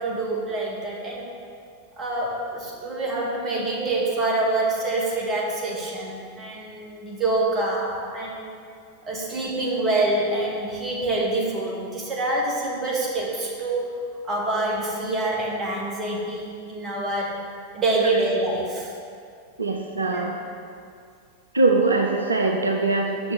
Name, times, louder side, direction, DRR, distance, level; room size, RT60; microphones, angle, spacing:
voice 1, 0.0-1.3 2.0-8.4 9.1-13.9 14.2-17.3 17.7-18.9 20.1-20.2, right 2 dB, 25° right, -3 dB, 1.8 m, -26 dB
voice 2, 19.6-20.3 21.5-23.3, right 3 dB, 75° right, 2 dB, 0.6 m, -22 dB
6.1 x 6.0 x 6.3 m, 2.3 s
figure-of-eight pair, 90°, 0 cm